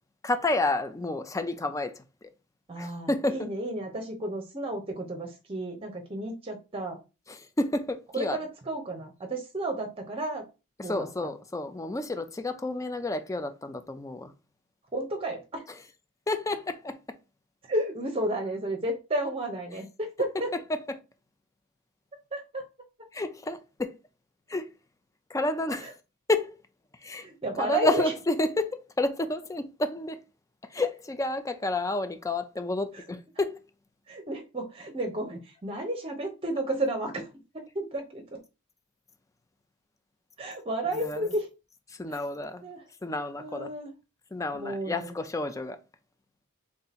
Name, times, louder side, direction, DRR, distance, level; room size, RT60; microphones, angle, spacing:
voice 1, 0.2-1.9 2.2-2.3 2.8-3.5 7.3-8.4 10.9-14.3 16.3-17.0 23.1-23.9 24.5-24.7 25.3-25.9 26.3-26.6 27.0-27.3 27.6-30.2 30.7-33.6 41.0-41.2 42.0-42.6 43.0-43.7 44.3-45.8, left 2 dB, 15° left, 0.4 m, -30 dB
voice 2, 2.7-7.0 8.1-10.4 10.8-11.1 14.9-15.6 17.7-20.5 22.3-22.7 25.8-25.9 27.2-28.1 32.9-33.0 34.1-37.3 37.5-38.4 40.4-41.5 42.1-42.2 42.6-42.8 43.4-43.9 44.5-45.1, right 1 dB, 25° right, 0.7 m, -32 dB
3.6 x 2.8 x 4.0 m
head